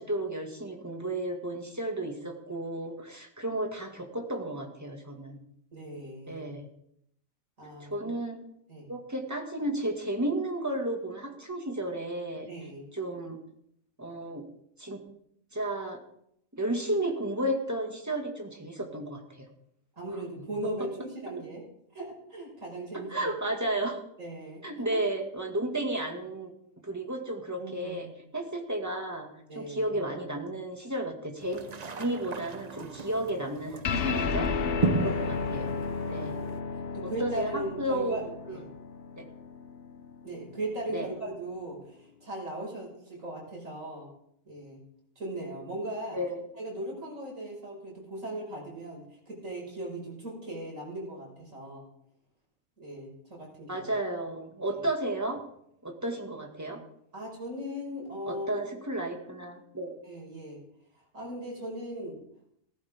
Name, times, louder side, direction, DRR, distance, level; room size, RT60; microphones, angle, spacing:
voice 1, 0.0-5.4 6.3-6.7 7.8-8.4 8.9-12.5 12.9-13.4 14.0-14.4 14.8-15.0 15.5-16.0 16.5-19.5 21.4-21.5 23.1-24.0 24.6-26.5 26.8-28.1 28.3-31.6 32.0-34.5 34.9-35.8 36.1-36.3 37.0-38.2 38.5-38.6 39.2-39.3 40.9-41.1 46.1-46.4 53.7-55.4 55.8-56.8 58.3-60.0, right 1 dB, 10° right, 2 dB, 2.0 m, -33 dB
voice 2, 5.7-6.5 7.6-8.1 8.7-8.9 12.5-12.8 20.0-21.6 21.9-23.3 24.2-24.6 24.9-25.0 27.6-28.2 29.5-30.0 34.1-35.5 36.2-36.6 36.9-38.2 38.5-38.6 40.2-44.1 44.5-44.8 45.2-46.2 46.6-51.9 52.8-53.9 54.7-54.8 57.1-58.6 60.0-60.6 61.1-62.2, right 1 dB, 65° right, -2 dB, 5.9 m, -38 dB
sound 1, 31.4-36.6, right 3 dB, 35° right, 0.7 m, -35 dB
sound 2, 33.8-40.6, left 5 dB, 50° left, 0.8 m, -33 dB
16.0 x 14.5 x 3.6 m, 0.73 s
omnidirectional pair, 1.5 m